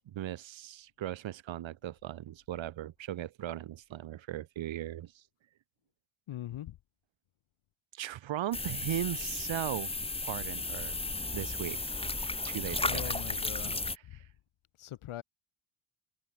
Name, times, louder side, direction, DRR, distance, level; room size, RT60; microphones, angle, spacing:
voice 1, 0.1-5.2 7.9-9.9 10.2-11.0 11.3-12.2 12.5-13.4 13.8-14.2, right 12 dB, 65° right, 2.5 m, -38 dB
voice 2, 6.3-6.8 12.9-13.9 14.8-15.2, left 13 dB, 85° left, 4.0 m, -41 dB
sound 1, 8.5-14.0, left 2 dB, 10° left, 2.0 m, -34 dB
open air
cardioid pair, 165°, 48 cm